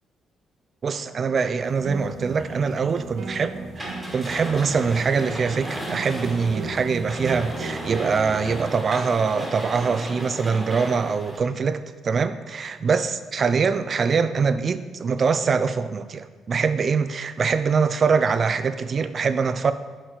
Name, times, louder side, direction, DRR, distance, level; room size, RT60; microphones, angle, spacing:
voice 1, 0.8-3.6 4.1-19.7, right 5 dB, 45° right, 11 dB, 0.4 m, -23 dB
sound 1, 1.6-8.6, right 4 dB, 75° right, 0.8 m, -36 dB
sound 2, 3.8-11.4, equal, 5° right, 1.7 m, -36 dB
6.6 x 4.4 x 3.9 m, 1.4 s
cardioid pair, 90°, 0 cm